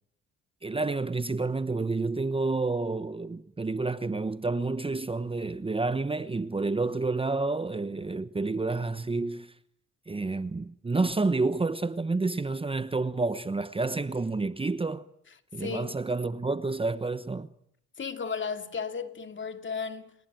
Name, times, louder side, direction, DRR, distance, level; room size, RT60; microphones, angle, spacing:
voice 1, 0.6-9.5 10.1-15.0 15.5-17.5, right 3 dB, 20° right, 1.0 m, -29 dB
voice 2, 15.6-15.9 18.0-20.1, left 5 dB, 40° left, 2.6 m, -34 dB
29.0 x 20.0 x 9.2 m
cardioid pair, 90°, 30 cm